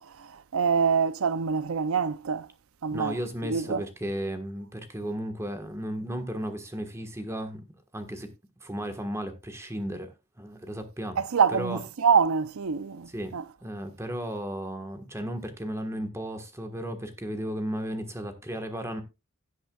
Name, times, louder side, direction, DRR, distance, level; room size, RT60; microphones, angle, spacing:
voice 1, 0.0-2.5 2.8-3.2 3.4-3.8 11.2-13.4, right 6 dB, 70° right, 0.6 m, -25 dB
voice 2, 2.9-7.6 7.9-8.3 8.6-11.2 11.5-11.8 13.1-13.3 13.6-19.0, equal, 15° right, 1.4 m, -34 dB
16.5 x 7.9 x 2.3 m
head